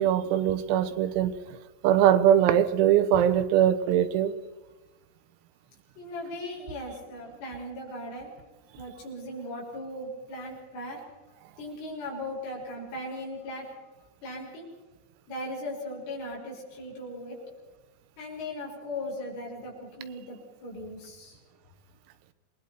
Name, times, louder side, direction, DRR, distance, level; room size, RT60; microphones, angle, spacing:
voice 1, 0.0-1.4 1.8-4.3, right 10 dB, 90° right, 3.9 m, -22 dB
voice 2, 6.0-8.3 8.8-11.0 11.6-13.7 14.2-14.7 15.3-17.4 18.2-21.4, left 1 dB, 70° left, 8.8 m, -38 dB
28.0 x 21.0 x 4.5 m
omnidirectional pair, 6.0 m